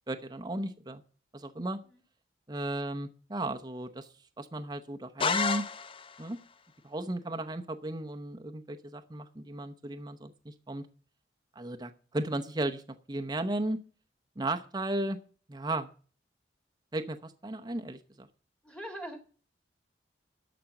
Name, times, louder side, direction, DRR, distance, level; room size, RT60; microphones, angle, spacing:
voice 1, 0.1-1.0 1.3-1.8 2.5-4.1 4.4-5.6 6.2-6.4 6.8-10.9 11.6-12.8 13.1-13.8 14.4-15.2 15.5-15.9 16.9-18.3, right 1 dB, 25° right, 6 dB, 0.8 m, -35 dB
sound 1, 5.2-6.3, left 5 dB, 30° left, 0.6 m, -30 dB
voice 2, 18.6-19.2, right 1 dB, 5° left, 5 dB, 2.0 m, -42 dB
13.0 x 5.2 x 7.7 m, 0.40 s
head